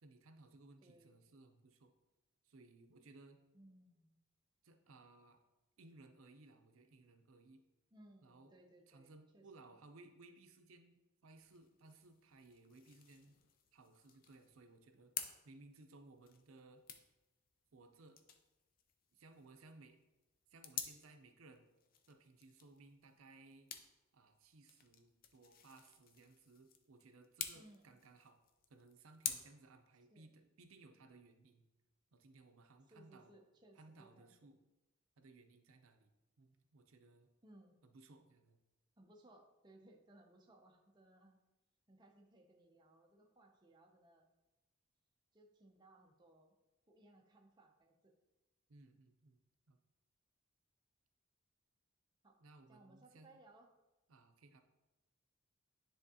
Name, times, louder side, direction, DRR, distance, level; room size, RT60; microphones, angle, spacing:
voice 1, 0.0-1.9 2.4-3.4 4.6-5.4 5.8-7.6 8.2-8.6 8.9-13.4 13.7-15.1 15.4-16.8 17.7-18.2 19.1-20.0 20.5-21.7 22.1-23.7 24.1-28.4 28.7-31.7 32.1-33.3 33.8-34.6 35.2-36.1 36.4-37.3 37.8-38.6 48.7-49.4 49.7-49.8 52.4-53.4 54.1-54.6, right 3 dB, 90° right, 6 dB, 0.6 m, -61 dB
voice 2, 0.8-1.2 3.5-4.1 7.9-9.4 27.5-28.0 30.1-30.2 32.9-34.3 37.4-37.8 39.0-41.4 41.9-44.3 45.3-46.5 46.9-48.1 52.2-52.4 52.7-53.7, right 1 dB, 20° right, 2 dB, 0.5 m, -64 dB
sound 1, 11.3-29.3, left 8 dB, 45° left, 0.4 m, -51 dB
9.8 x 3.5 x 2.8 m, 1.0 s
head